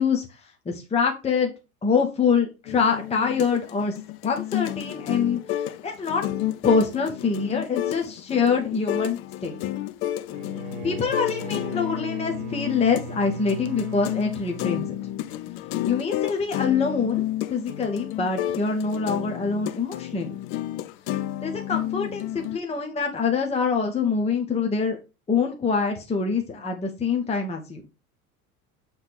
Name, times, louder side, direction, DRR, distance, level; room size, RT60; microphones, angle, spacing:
voice 1, 0.0-1.5 1.8-4.0 4.2-6.2 6.6-9.6 10.8-14.9 15.8-17.2 17.5-20.3 21.4-25.0 25.3-27.8, left 5 dB, 15° left, 3 dB, 1.0 m, -25 dB
sound 1, 2.7-22.6, left 13 dB, 30° left, 0.4 m, -31 dB
Bowed string instrument, 10.3-15.6, right 4 dB, 55° right, 1.2 m, -39 dB
7.8 x 3.5 x 4.6 m, 0.29 s
figure-of-eight pair, 75°, 43 cm